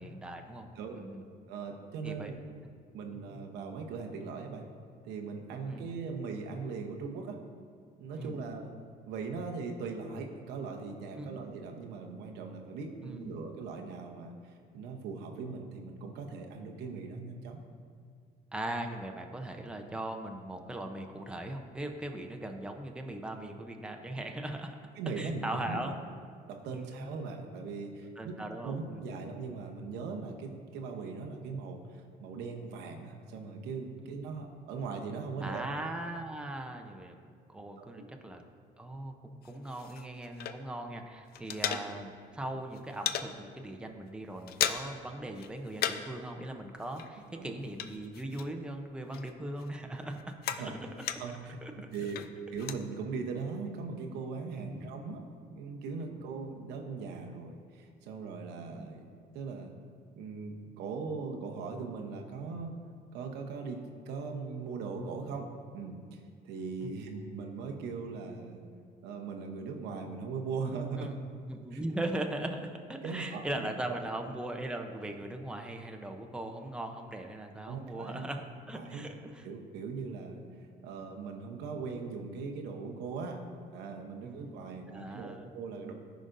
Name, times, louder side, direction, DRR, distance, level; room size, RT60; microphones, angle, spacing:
voice 1, 0.0-0.7 0.9-1.2 2.0-2.3 3.3-3.4 5.7-5.9 8.2-8.4 11.2-11.5 13.0-13.4 18.5-24.8 25.2-26.0 26.7-27.1 28.2-29.0 34.0-34.1 35.4-37.1 37.5-38.4 38.8-50.2 50.7-50.9 51.6-51.7 54.5-54.8 58.7-58.9 66.8-66.9 71.0-71.2 71.5-79.4 84.2-85.5, right 1 dB, 5° right, 3 dB, 0.6 m, -39 dB
voice 2, 1.5-2.3 2.9-4.6 5.0-7.4 8.0-8.7 9.1-17.6 25.0-25.8 26.5-28.3 28.6-35.7 37.8-38.0 41.7-41.8 47.3-47.5 50.6-50.7 51.2-55.2 55.5-59.0 59.3-59.7 60.2-62.7 63.1-63.8 64.1-66.2 66.4-68.6 69.0-71.2 71.7-71.8 73.0-74.0 77.7-78.3 78.7-79.1 79.4-80.4 80.8-83.4 83.7-85.9, right 4 dB, 90° right, 2 dB, 0.9 m, -39 dB
sound 1, 39.4-40.9 41.2-42.3 42.6-43.3 43.7-43.9 44.2-45.1 45.3-46.2 46.4-48.8 49.1-51.5 51.9-52.8, left 10 dB, 65° left, 0.5 m, -37 dB
14.5 x 5.1 x 2.6 m, 2.1 s
cardioid pair, 110°, 17 cm